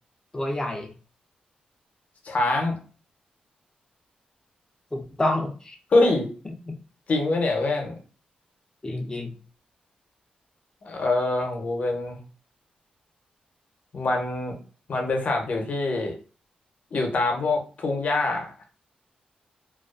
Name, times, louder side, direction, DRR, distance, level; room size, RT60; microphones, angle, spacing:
voice 1, 0.3-0.9 4.9-5.8 6.7-6.8 8.8-9.3, left 1 dB, 25° left, 2 dB, 0.5 m, -28 dB
voice 2, 2.2-2.8 5.9-6.3 7.1-7.9 10.8-12.2 13.9-14.6 14.9-16.2 16.9-18.5, left 2 dB, 55° left, 2 dB, 0.7 m, -24 dB
2.3 x 2.3 x 2.3 m, 0.38 s
cardioid pair, 80°, 3 cm